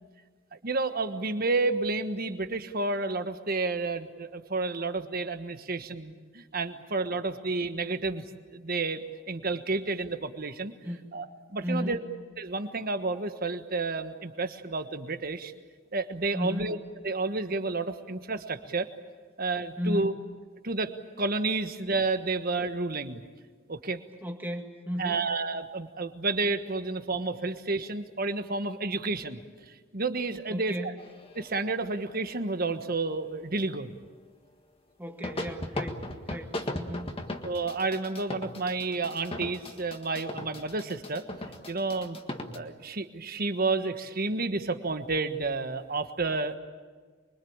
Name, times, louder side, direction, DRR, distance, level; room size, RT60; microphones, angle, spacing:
voice 1, 0.5-8.2 8.5-10.7 11.1-11.2 11.5-12.0 12.4-15.5 15.9-16.8 17.0-18.9 19.4-20.1 20.6-23.2 23.7-24.0 25.0-29.4 29.9-30.9 31.3-33.9 37.4-41.3 41.7-42.2 42.5-46.6, right 3 dB, 45° right, 9 dB, 1.3 m, -30 dB
voice 2, 11.6-12.0 16.3-16.8 19.8-20.2 24.2-25.3 30.5-31.0 35.0-36.0 36.3-37.2, equal, 10° right, 3 dB, 2.0 m, -34 dB
sound 1, 31.0-33.0 35.2-42.6, left 1 dB, 30° left, 1.7 m, -38 dB
25.0 x 23.5 x 8.8 m, 1.5 s
head